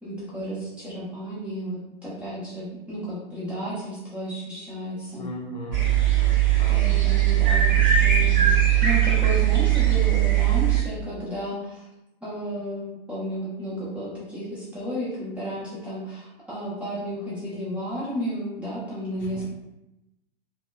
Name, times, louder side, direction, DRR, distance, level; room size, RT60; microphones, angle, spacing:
voice 1, 0.0-5.3 6.7-11.9 12.2-19.4, equal, 5° right, -10 dB, 0.6 m, -33 dB
voice 2, 5.2-7.0 19.2-19.4, equal, 50° left, -1 dB, 0.6 m, -38 dB
sound 1, 5.7-10.8, right 11 dB, 50° right, 0.8 m, -19 dB
2.8 x 2.2 x 2.2 m, 0.90 s
figure-of-eight pair, 110°, 29 cm